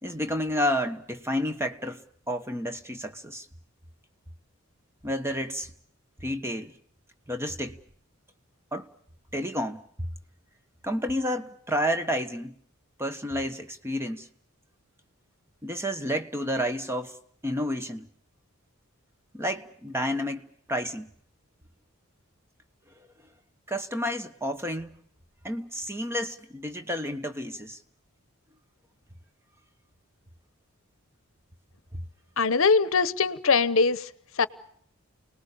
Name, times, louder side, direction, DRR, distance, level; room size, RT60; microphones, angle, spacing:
voice 1, 0.0-3.5 5.0-5.7 6.2-6.8 7.3-7.8 8.7-8.9 9.3-10.1 10.8-12.6 13.0-14.3 15.6-17.2 17.4-18.1 19.3-21.1 23.0-23.1 23.7-25.0 25.4-27.8 31.9-32.0, equal, 10° right, 1.3 m, -30 dB
voice 2, 32.4-34.1 34.4-34.5, left 4 dB, 65° left, 0.9 m, -22 dB
29.5 x 19.5 x 6.9 m
head